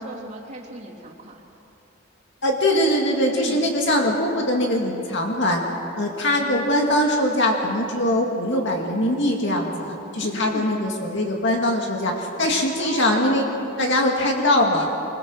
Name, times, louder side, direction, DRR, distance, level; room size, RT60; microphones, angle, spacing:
voice 1, 0.0-1.4 3.4-3.6 6.4-6.5 10.2-10.8 12.8-13.2, right 1 dB, 35° right, -2 dB, 3.1 m, -38 dB
voice 2, 2.4-5.6 6.0-13.4 13.8-14.9, left 1 dB, 60° left, 1 dB, 2.2 m, -22 dB
25.5 x 22.5 x 6.3 m, 2.9 s
head